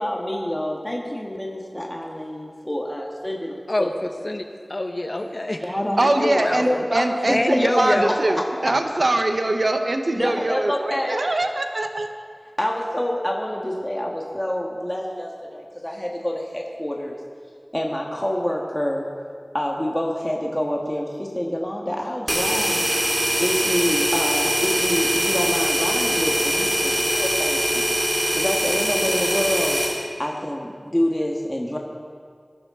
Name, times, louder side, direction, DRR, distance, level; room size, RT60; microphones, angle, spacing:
voice 1, 0.0-3.9 5.1-5.3 5.6-6.3 6.6-8.1 8.6-8.7 10.2-11.2 12.6-17.2 17.7-19.1 19.5-22.8 23.4-27.8 28.3-29.8 30.2-31.8, equal, 20° left, -1 dB, 1.5 m, -27 dB
voice 2, 3.7-5.6 6.0-6.9 7.3-8.1, left 1 dB, 55° left, 5 dB, 1.2 m, -25 dB
voice 3, 6.0-12.1, right 2 dB, 75° right, 6 dB, 0.9 m, -23 dB
sound 1, 22.3-30.0, right 1 dB, 40° right, 2.6 m, -22 dB
20.5 x 12.0 x 3.7 m, 2.1 s
wide cardioid pair, 45°, 0 cm